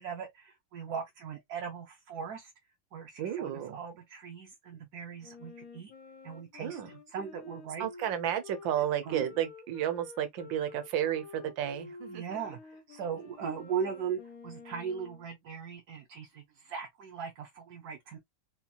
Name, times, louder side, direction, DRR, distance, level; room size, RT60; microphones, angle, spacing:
voice 1, 0.0-2.5 2.9-5.9 6.2-7.9 9.0-9.3 12.1-18.2, right 7 dB, 60° right, 1.2 m, -39 dB
voice 2, 3.2-3.8 6.6-6.9 7.8-12.4, right 10 dB, 80° right, 1.5 m, -32 dB
Wind instrument woodwind instrument, 5.2-15.3, left 4 dB, 55° left, 1.1 m, -50 dB
4.3 x 2.9 x 2.3 m
omnidirectional pair, 2.0 m